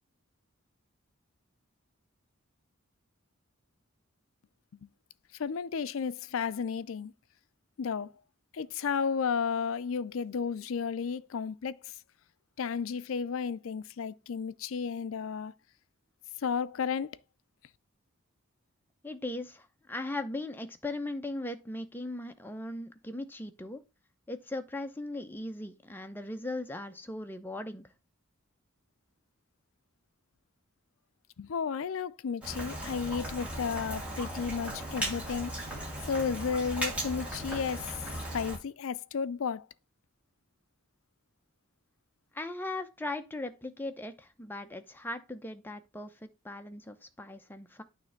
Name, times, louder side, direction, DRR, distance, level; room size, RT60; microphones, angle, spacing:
voice 1, 5.4-7.1 7.8-8.1 8.5-11.9 12.6-15.5 16.4-17.2 31.4-35.6 36.0-37.9 38.3-39.7, left 6 dB, 70° left, 0.4 m, -33 dB
voice 2, 19.0-23.8 24.3-27.9 42.3-47.8, left 2 dB, 10° left, 0.7 m, -38 dB
Rain, 32.4-38.6, right 1 dB, 5° right, 2.4 m, -37 dB
9.0 x 3.2 x 5.7 m
head